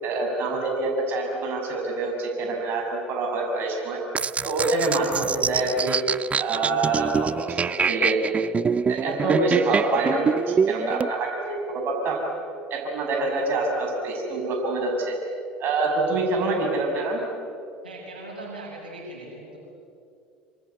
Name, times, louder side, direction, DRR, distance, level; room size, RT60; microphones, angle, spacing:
voice 1, 0.0-4.0 4.4-6.0 6.4-8.4 8.9-12.2 12.7-15.2 15.6-17.2, right 2 dB, 50° right, 1 dB, 6.3 m, -26 dB
sound 1, 4.1-11.1, right 6 dB, 25° right, 0.5 m, -25 dB
voice 2, 17.8-19.6, right 2 dB, 85° right, -1 dB, 6.3 m, -39 dB
26.5 x 25.5 x 8.3 m, 2.5 s
hypercardioid pair, 70°, 5 cm